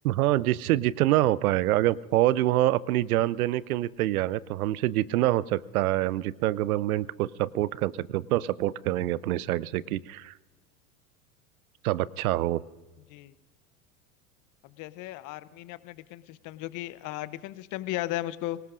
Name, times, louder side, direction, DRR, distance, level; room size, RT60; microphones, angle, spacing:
voice 1, 0.0-10.3 11.8-12.6, right 15 dB, 70° right, 21 dB, 0.6 m, -26 dB
voice 2, 14.6-18.6, left 16 dB, 45° left, 16 dB, 0.8 m, -36 dB
24.5 x 18.5 x 2.5 m, 1.2 s
hypercardioid pair, 85°, 46 cm